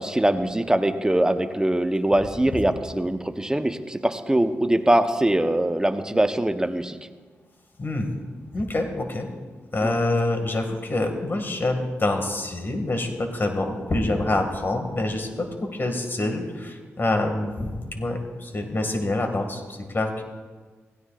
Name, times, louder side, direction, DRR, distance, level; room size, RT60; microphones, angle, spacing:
voice 1, 0.0-7.0 9.8-9.9, right 1 dB, 15° right, 7 dB, 1.0 m, -22 dB
voice 2, 7.8-8.2 8.5-9.3 9.7-20.2, left 2 dB, 45° left, 5 dB, 2.1 m, -26 dB
16.5 x 16.0 x 2.5 m, 1.4 s
cardioid pair, 50°, 5 cm